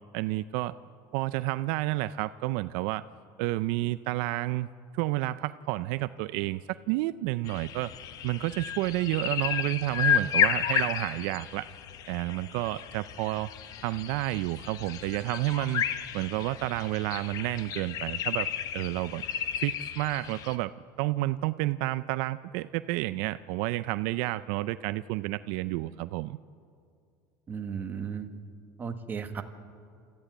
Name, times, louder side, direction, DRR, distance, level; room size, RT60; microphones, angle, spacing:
voice 1, 0.1-0.8 1.1-3.0 3.4-4.7 4.9-6.6 6.9-7.9 8.2-11.7 12.1-13.5 13.8-15.9 16.1-18.5 18.7-19.2 19.6-20.7 21.0-26.4, right 17 dB, 70° right, 14 dB, 0.4 m, -30 dB
sound 1, 7.5-20.6, left 9 dB, 45° left, 0.9 m, -32 dB
voice 2, 27.5-28.3 28.8-29.4, right 6 dB, 20° right, 6 dB, 1.4 m, -35 dB
25.5 x 14.0 x 9.0 m, 2.3 s
cardioid pair, 150°, 9 cm